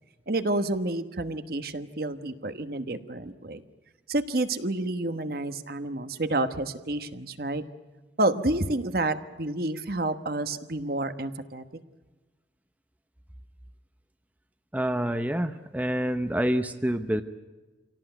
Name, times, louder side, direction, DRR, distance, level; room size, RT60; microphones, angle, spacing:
voice 1, 0.3-3.6 4.1-7.6 8.2-11.6, right 2 dB, 55° right, 10 dB, 1.2 m, -29 dB
voice 2, 14.7-17.2, equal, 10° right, 8 dB, 0.8 m, -27 dB
26.5 x 17.5 x 9.1 m, 1.3 s
head